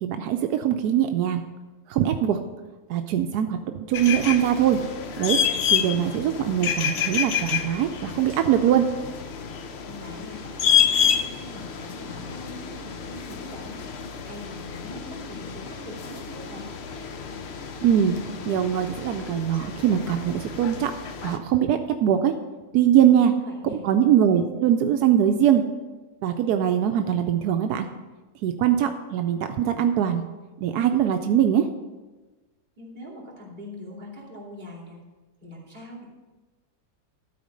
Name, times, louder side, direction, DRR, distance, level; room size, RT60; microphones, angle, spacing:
voice 1, 0.0-1.4 1.9-2.4 2.9-3.6 3.9-4.8 5.2-5.4 5.7-8.8 17.8-18.2 18.5-20.9 21.2-22.3 22.7-23.3 23.7-25.6 26.2-27.9 28.4-30.2 30.6-31.7, right 10 dB, 85° right, 6 dB, 1.1 m, -22 dB
sound 1, 3.9-21.4, left 8 dB, 55° left, 0.8 m, -29 dB
voice 2, 9.8-13.8 14.2-16.7 22.9-23.0 23.4-23.8 32.8-35.0 35.4-36.0, left 1 dB, 30° right, -7 dB, 3.0 m, -42 dB
12.5 x 4.3 x 6.4 m, 1.2 s
omnidirectional pair, 1.7 m